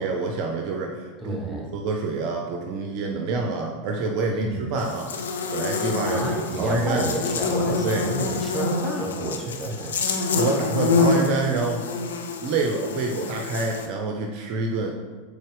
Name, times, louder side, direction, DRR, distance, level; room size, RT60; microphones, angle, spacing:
voice 1, 0.0-7.1 7.8-8.1 9.6-9.9 10.3-11.9 12.4-14.9, right 3 dB, 45° right, 1 dB, 0.5 m, -27 dB
voice 2, 1.2-1.7 4.3-4.7 6.0-10.0, right 1 dB, 5° right, -2 dB, 1.0 m, -31 dB
Buzz, 4.8-13.9, left 4 dB, 70° left, 0.4 m, -26 dB
4.1 x 3.3 x 3.7 m, 1.4 s
figure-of-eight pair, 85°, 0 cm